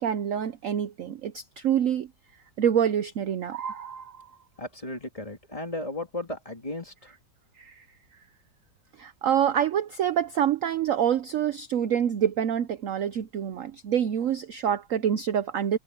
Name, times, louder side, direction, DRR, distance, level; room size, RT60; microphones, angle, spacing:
voice 1, 0.0-2.1 2.6-4.3 7.6-7.8 9.0-15.8, right 9 dB, 60° right, 0.9 m, -26 dB
voice 2, 4.6-7.1, left 2 dB, 20° left, 2.8 m, -35 dB
omnidirectional pair, 2.0 m